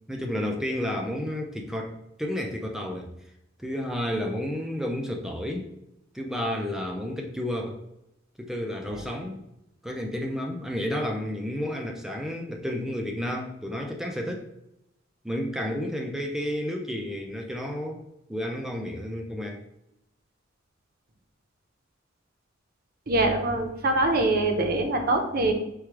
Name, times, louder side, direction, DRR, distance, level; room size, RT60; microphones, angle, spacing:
voice 1, 0.1-3.1 3.6-5.7 6.1-7.8 8.4-9.4 9.8-14.5 15.2-18.0 18.3-19.6, left 1 dB, 5° right, 1 dB, 0.4 m, -31 dB
voice 2, 23.1-25.5, right 2 dB, 50° right, 4 dB, 0.7 m, -24 dB
4.6 x 2.3 x 4.7 m, 0.84 s
head